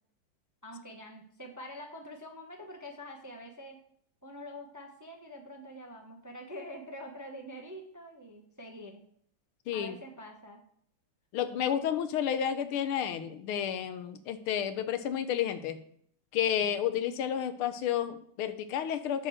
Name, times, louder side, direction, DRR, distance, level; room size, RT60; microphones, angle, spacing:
voice 1, 0.6-3.8 4.2-9.0 9.7-10.6 16.9-17.2, equal, 15° right, 2 dB, 0.8 m, -45 dB
voice 2, 9.7-10.0 11.3-15.8 16.3-19.3, left 9 dB, 90° left, 11 dB, 1.7 m, -31 dB
9.8 x 4.5 x 6.4 m, 0.65 s
omnidirectional pair, 2.3 m